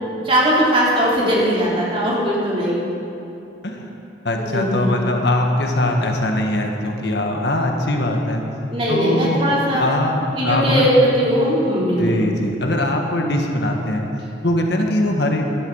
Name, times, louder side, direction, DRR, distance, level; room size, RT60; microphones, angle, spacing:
voice 1, 0.2-2.8 4.4-5.0 8.7-9.9 10.4-12.2 13.2-13.4, equal, 30° right, -5 dB, 3.2 m, -19 dB
voice 2, 4.2-8.4 8.9-9.4 9.8-10.9 12.0-14.1 14.4-15.4, left 1 dB, 65° left, 2 dB, 1.5 m, -21 dB
12.0 x 12.0 x 7.1 m, 2.7 s
head